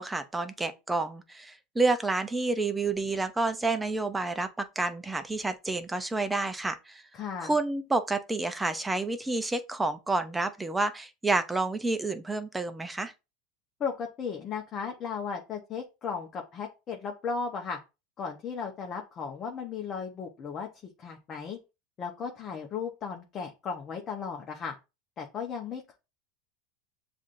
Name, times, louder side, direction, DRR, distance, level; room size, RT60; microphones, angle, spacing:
voice 1, 0.0-7.0 7.4-13.1, right 3 dB, 10° right, 0.5 m, -29 dB
voice 2, 7.1-7.5 13.8-17.8 18.2-20.7 21.0-21.6 22.0-24.7 25.2-26.0, left 6 dB, 35° left, 0.8 m, -35 dB
7.1 x 2.5 x 2.5 m
supercardioid pair, 125°, 0 cm